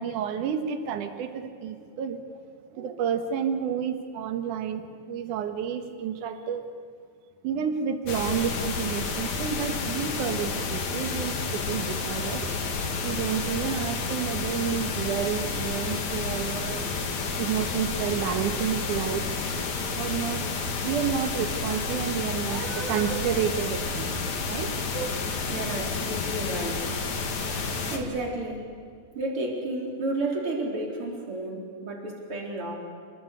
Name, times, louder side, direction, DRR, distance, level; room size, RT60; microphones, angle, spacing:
voice 1, 0.0-2.2 2.7-6.6 7.4-12.5 13.0-17.0 17.4-19.3 20.0-20.5 20.8-24.1 24.5-25.2, right 8 dB, 75° right, 7 dB, 2.9 m, -30 dB
sound 1, 8.1-28.0, left 4 dB, 65° left, 3.4 m, -30 dB
voice 2, 25.5-26.9 27.5-28.7 29.1-32.7, right 2 dB, 40° right, 0 dB, 4.9 m, -32 dB
29.5 x 19.5 x 8.4 m, 2.2 s
omnidirectional pair, 3.6 m